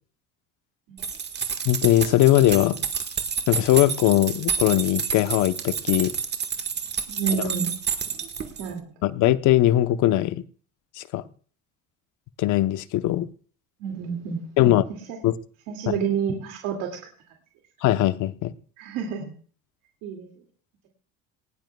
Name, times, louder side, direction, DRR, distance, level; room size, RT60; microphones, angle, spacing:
sound 1, 1.0-8.7, right 6 dB, 30° right, 1.5 m, -29 dB
voice 1, 1.6-2.8 3.5-6.1 9.0-10.4 11.0-11.2 12.4-13.3 14.6-14.9 15.2-15.3 17.8-18.5, left 14 dB, 65° left, 12 dB, 0.9 m, -20 dB
voice 2, 7.1-7.7 8.6-8.9 13.8-14.5 15.1-15.2 15.7-17.0 18.8-19.3 20.0-20.3, right 7 dB, 90° right, 1 dB, 2.3 m, -29 dB
19.0 x 17.5 x 2.3 m, 0.43 s
cardioid pair, 135°, 32 cm